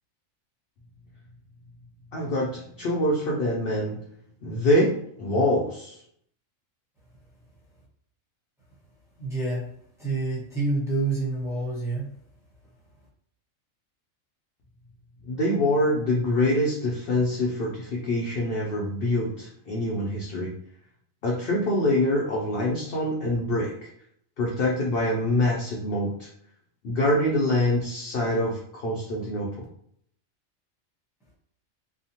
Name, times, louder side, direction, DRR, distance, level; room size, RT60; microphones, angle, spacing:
voice 1, 2.1-4.0 4.4-4.9 5.2-6.0 15.3-20.5 21.2-23.9 24.4-26.3 26.8-29.6, left 1 dB, 60° left, -2 dB, 0.6 m, -25 dB
voice 2, 9.2-9.7 10.0-12.1, right 3 dB, 5° right, -7 dB, 0.9 m, -28 dB
2.9 x 2.0 x 2.8 m, 0.69 s
omnidirectional pair, 1.4 m